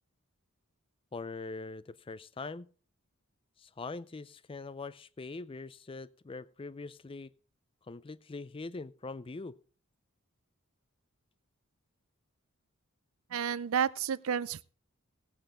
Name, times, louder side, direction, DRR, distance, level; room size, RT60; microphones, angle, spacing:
voice 1, 1.1-2.7 3.6-7.3 7.9-9.6, left 3 dB, 25° left, 0.4 m, -42 dB
voice 2, 13.3-14.6, right 8 dB, 75° right, 0.5 m, -31 dB
16.5 x 8.6 x 3.7 m
head